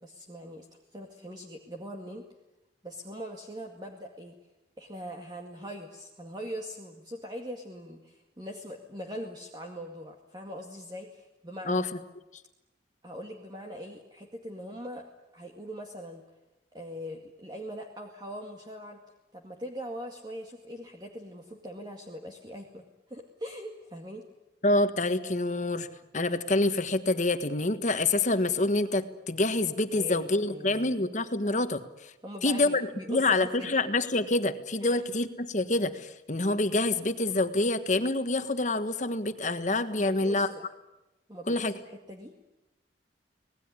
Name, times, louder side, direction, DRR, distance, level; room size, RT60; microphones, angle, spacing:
voice 1, 0.0-0.7 0.9-2.3 2.8-4.4 4.8-11.8 13.0-15.0 15.3-16.2 16.7-19.0 19.3-24.3 29.9-30.9 32.2-33.7 34.8-35.0 40.0-40.6 41.3-42.3, equal, 25° right, 2 dB, 2.2 m, -41 dB
voice 2, 24.6-25.9 26.1-31.8 32.4-40.5 41.5-41.7, left 2 dB, 45° left, 9 dB, 1.5 m, -27 dB
26.5 x 19.0 x 9.8 m, 1.0 s
head